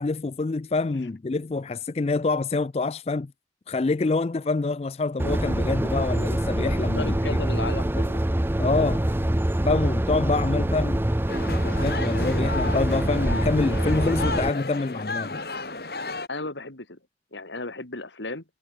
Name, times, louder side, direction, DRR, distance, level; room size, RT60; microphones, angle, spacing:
voice 1, 0.0-3.3 3.7-7.4 8.6-9.0 9.6-11.0 11.6-15.4, left 3 dB, 35° left, 0.4 m, -26 dB
sound 1, 5.2-14.5, right 1 dB, 10° right, 0.6 m, -25 dB
voice 2, 7.0-8.2 16.3-17.0 17.3-18.4, left 2 dB, 90° left, 3.3 m, -34 dB
sound 2, 11.3-16.3, left 3 dB, 60° left, 3.7 m, -33 dB
head